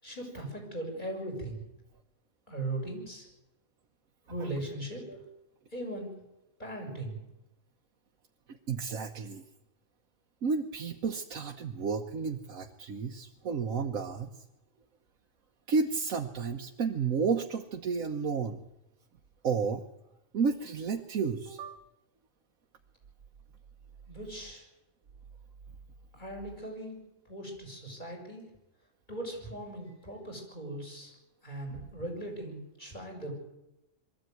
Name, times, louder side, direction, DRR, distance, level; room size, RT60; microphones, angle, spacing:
voice 1, 0.0-1.6 2.5-3.3 4.3-5.0 5.7-6.1 6.6-7.2 24.1-24.7 26.1-27.0 27.3-28.5 29.1-31.1 31.4-33.3, right 1 dB, 35° left, 0 dB, 6.0 m, -39 dB
voice 2, 8.5-9.4 10.4-14.4 15.7-18.6 19.4-19.8 20.3-21.8 31.7-31.8, right 5 dB, 90° right, 3 dB, 1.5 m, -32 dB
22.5 x 14.0 x 9.3 m, 0.93 s
omnidirectional pair, 1.4 m